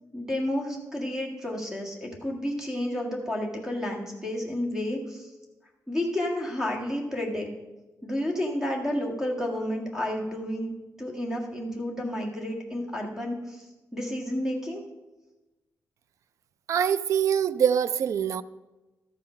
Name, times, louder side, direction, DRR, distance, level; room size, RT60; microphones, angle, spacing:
voice 1, 0.1-5.3 5.9-7.5 8.0-10.7 11.0-14.8, left 1 dB, 5° right, 0 dB, 1.7 m, -31 dB
voice 2, 16.7-18.4, right 8 dB, 55° right, 15 dB, 0.3 m, -24 dB
13.0 x 5.7 x 5.6 m, 1.1 s
wide cardioid pair, 170°, 6 cm